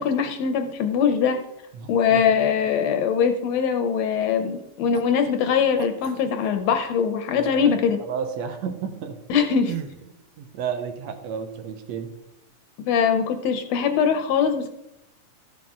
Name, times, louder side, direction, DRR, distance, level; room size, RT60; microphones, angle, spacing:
voice 1, 0.0-1.4 1.9-8.0 9.3-9.8 12.8-14.7, left 7 dB, 75° left, 6 dB, 1.7 m, -22 dB
voice 2, 1.7-2.2 7.3-9.2 10.4-12.1, right 7 dB, 70° right, 6 dB, 2.1 m, -32 dB
sound 1, 4.9-5.1 5.8-6.6 9.7-10.1, right 11 dB, 90° right, 1.2 m, -36 dB
13.5 x 6.1 x 3.6 m, 0.84 s
omnidirectional pair, 3.3 m